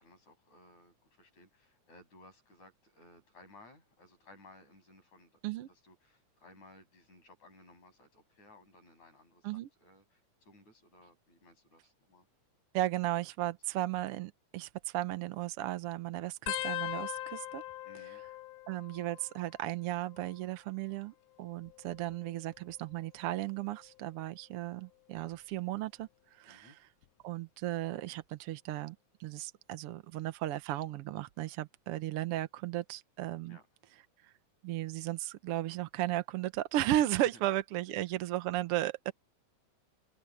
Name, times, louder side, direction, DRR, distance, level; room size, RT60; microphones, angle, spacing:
voice 1, 0.0-12.3 13.4-13.6 17.8-18.2 26.5-26.8 33.5-33.6, left 2 dB, 65° left, 9.0 m, -59 dB
voice 2, 12.7-17.6 18.1-18.2 18.7-26.8 27.2-33.6 34.2-34.3 34.6-39.1, right 14 dB, 70° right, 1.4 m, -35 dB
sound 1, 16.5-19.6 19.9-20.5 21.5-23.0 23.6-24.0 25.2-25.5 27.0-27.1, left 15 dB, 80° left, 1.4 m, -42 dB
open air
omnidirectional pair, 3.5 m